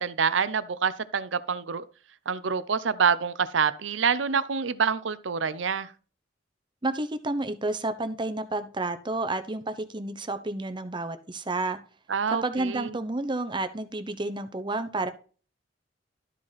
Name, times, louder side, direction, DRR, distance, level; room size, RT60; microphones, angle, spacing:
voice 1, 0.0-1.9 2.3-5.9 12.1-13.0, right 6 dB, 85° right, 0.7 m, -26 dB
voice 2, 6.8-11.8 12.4-15.1, right 2 dB, 25° right, 0.8 m, -30 dB
12.5 x 5.1 x 4.1 m
head